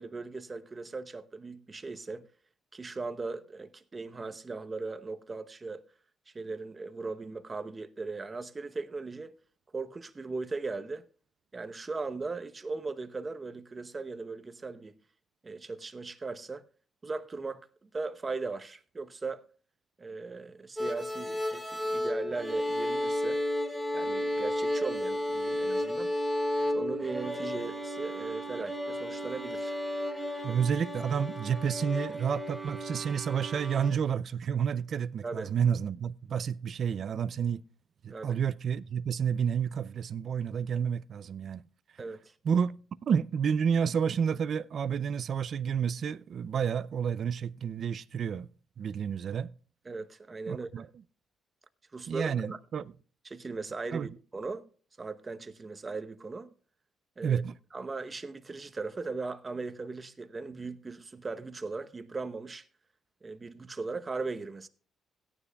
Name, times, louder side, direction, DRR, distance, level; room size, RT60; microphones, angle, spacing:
voice 1, 0.0-2.3 2.7-5.8 6.3-9.3 9.7-11.1 11.5-15.0 15.4-16.6 17.0-19.4 20.0-23.4 23.9-26.1 26.7-29.8 35.2-35.5 38.1-38.4 42.0-42.3 49.8-50.9 51.9-52.6 53.2-54.6 55.0-56.5 57.2-57.4 57.7-62.7 63.2-64.7, right 3 dB, 30° right, 0.9 m, -38 dB
sound 1, 20.8-33.9, left 1 dB, ahead, 2.8 m, -33 dB
voice 2, 30.4-37.6 38.0-41.6 42.4-42.8 43.1-48.5 48.8-49.5 50.5-50.9 52.1-52.8 53.9-54.1 57.2-57.6, right 7 dB, 55° right, 0.4 m, -30 dB
17.0 x 9.8 x 2.3 m
cardioid pair, 90°, 0 cm